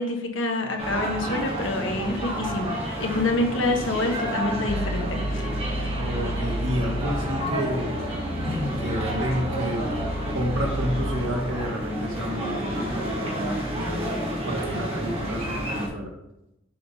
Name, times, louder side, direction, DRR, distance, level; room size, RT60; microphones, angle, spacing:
voice 1, 0.0-2.7 3.0-5.4, left 2 dB, 90° left, 3 dB, 1.3 m, -27 dB
sound 1, 0.8-15.9, right 1 dB, 30° right, 2.1 m, -30 dB
sound 2, 4.7-14.3, left 1 dB, 50° left, 0.5 m, -33 dB
voice 2, 6.0-8.0 8.4-9.9 10.3-16.1, equal, 90° right, 0 dB, 1.8 m, -30 dB
7.5 x 5.2 x 4.1 m, 0.88 s
head